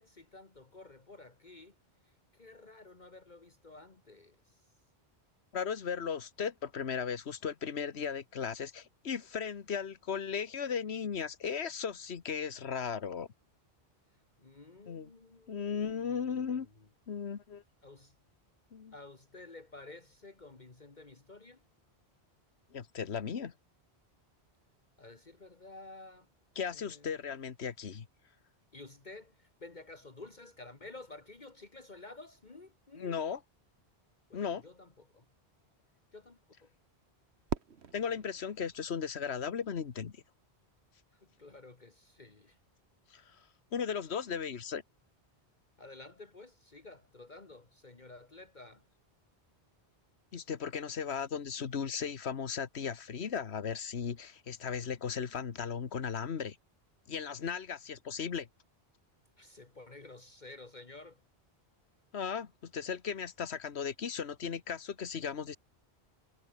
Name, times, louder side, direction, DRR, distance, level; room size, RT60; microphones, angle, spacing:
voice 1, 0.0-1.8 2.0-4.8 14.1-16.9 17.8-18.2 18.9-21.6 25.0-26.3 26.7-27.2 28.7-33.2 34.3-35.3 36.1-36.7 41.1-42.6 45.8-48.9 59.4-61.2, left 2 dB, 45° left, 2.0 m, -52 dB
voice 2, 5.5-13.3 14.9-15.1 15.5-16.7 17.1-17.6 18.7-18.9 22.7-23.5 26.6-28.1 33.0-33.4 34.3-34.6 37.9-40.1 43.1-43.2 43.7-44.8 50.3-56.6 57.1-58.5 62.1-65.6, left 7 dB, 75° left, 1.5 m, -36 dB
Fireworks, 37.5-39.7, right 6 dB, 75° right, 1.6 m, -42 dB
omnidirectional pair, 1.1 m